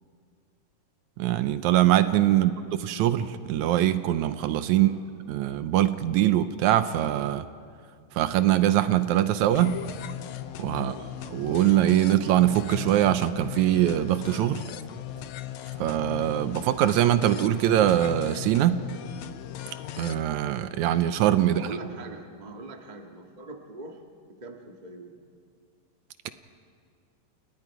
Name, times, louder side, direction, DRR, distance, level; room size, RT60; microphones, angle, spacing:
voice 1, 1.2-4.9 5.3-7.4 8.2-9.8 10.6-11.0 11.3-14.6 15.8-18.8 20.0-21.6, right 12 dB, 75° right, 11 dB, 1.8 m, -23 dB
voice 2, 4.7-5.0 10.7-11.0 21.4-24.0 24.4-25.1, right 3 dB, 25° right, 2 dB, 0.9 m, -42 dB
sound 1, 9.6-20.2, left 11 dB, 75° left, 1.8 m, -38 dB
29.5 x 29.0 x 4.9 m, 2.2 s
omnidirectional pair, 4.0 m